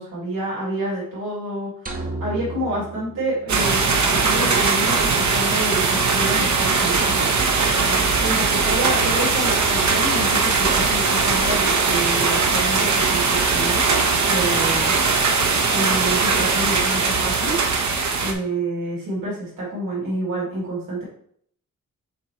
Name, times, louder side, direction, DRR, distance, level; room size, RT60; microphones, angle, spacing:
voice 1, 0.0-7.3 8.2-13.8 14.3-15.0 15.7-17.9 18.2-21.0, right 1 dB, 85° right, -7 dB, 2.7 m, -28 dB
sound 1, 1.9-4.1, right 2 dB, 25° right, 0.8 m, -33 dB
sound 2, 3.5-18.3, right 4 dB, 60° right, 0.9 m, -20 dB
7.3 x 4.4 x 3.0 m, 0.64 s
wide cardioid pair, 175°, 33 cm